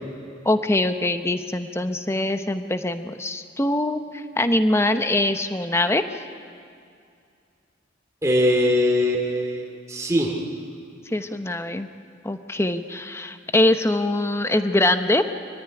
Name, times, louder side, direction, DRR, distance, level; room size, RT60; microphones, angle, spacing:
voice 1, 0.4-6.0 11.1-11.9 12.2-15.2, left 1 dB, 15° left, 9 dB, 0.8 m, -23 dB
voice 2, 8.2-10.3, left 1 dB, 15° right, -1 dB, 2.3 m, -21 dB
24.5 x 15.0 x 9.8 m, 2.4 s
head